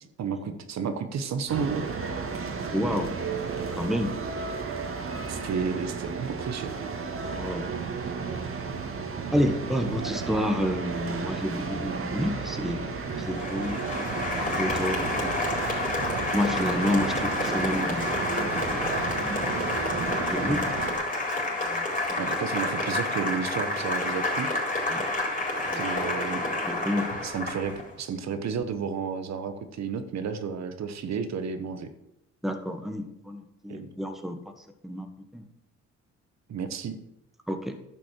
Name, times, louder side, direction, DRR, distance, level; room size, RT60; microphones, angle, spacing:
voice 1, 0.0-1.9 5.3-6.8 22.2-24.5 25.7-26.4 27.2-31.9 33.7-33.9 36.5-37.0, right 6 dB, 60° right, 8 dB, 1.1 m, -32 dB
sound 1, 1.5-20.9, right 5 dB, 45° right, 2.1 m, -33 dB
voice 2, 2.7-3.1 3.7-4.2 7.4-7.7 9.3-14.0 14.3-15.3 16.3-19.4 20.2-20.6 21.4-22.2 24.9-25.0 25.7-26.0 26.4-27.1 32.4-34.4 34.8-35.1 35.3-35.4 37.5-37.8, equal, ahead, 6 dB, 1.4 m, -30 dB
Applause, 13.1-27.9, left 2 dB, 25° left, 4.3 m, -29 dB
11.0 x 6.0 x 7.5 m, 0.88 s
cardioid pair, 90°, 30 cm